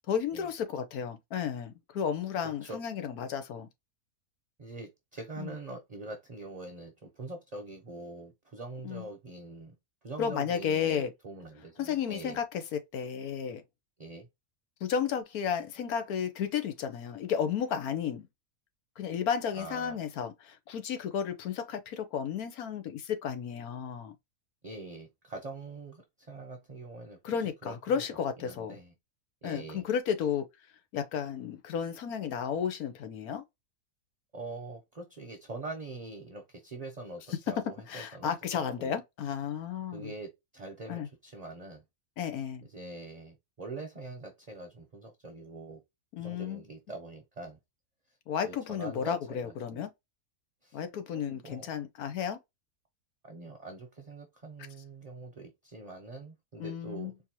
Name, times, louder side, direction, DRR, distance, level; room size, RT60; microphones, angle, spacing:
voice 1, 0.1-3.7 5.4-5.5 8.8-9.0 10.2-11.1 11.8-13.6 14.8-18.3 19.0-24.1 27.2-28.8 29.4-30.5 30.9-33.4 37.9-40.1 40.9-41.1 42.2-42.6 46.1-46.6 48.3-49.9 50.7-52.4 56.6-57.1, left 7 dB, 75° left, 1.3 m, -33 dB
voice 2, 2.4-2.8 4.6-9.7 10.0-12.4 14.0-14.3 19.5-20.0 24.6-27.2 27.6-28.0 28.4-28.9 29.4-29.8 34.3-39.0 39.9-41.8 42.6-45.8 46.2-47.6 48.4-49.9 50.6-50.8 51.1-51.7 53.2-57.3, right 3 dB, 30° right, 0.8 m, -44 dB
4.4 x 2.7 x 2.8 m
omnidirectional pair, 1.6 m